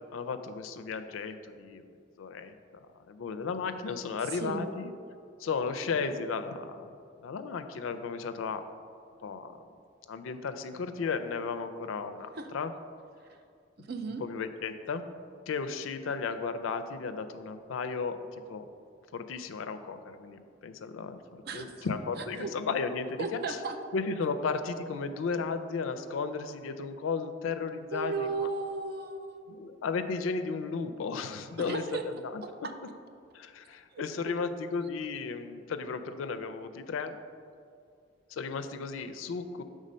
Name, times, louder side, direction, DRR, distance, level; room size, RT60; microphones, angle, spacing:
voice 1, 0.1-1.9 2.2-2.5 3.1-4.9 5.4-6.9 7.2-8.6 9.2-9.6 10.1-12.7 14.1-15.1 15.5-18.7 19.1-21.2 21.5-23.6 23.9-28.5 29.5-32.4 33.3-37.2 38.3-39.6, left 5 dB, 85° left, 9 dB, 0.4 m, -34 dB
voice 2, 4.3-4.7 12.4-12.5 13.3-13.4 13.8-14.2 21.4-21.9 22.4-22.5 23.2-23.8 27.9-29.4 31.6-32.0 33.9-34.3, right 4 dB, 50° right, 6 dB, 0.4 m, -35 dB
5.1 x 3.6 x 5.4 m, 2.3 s
head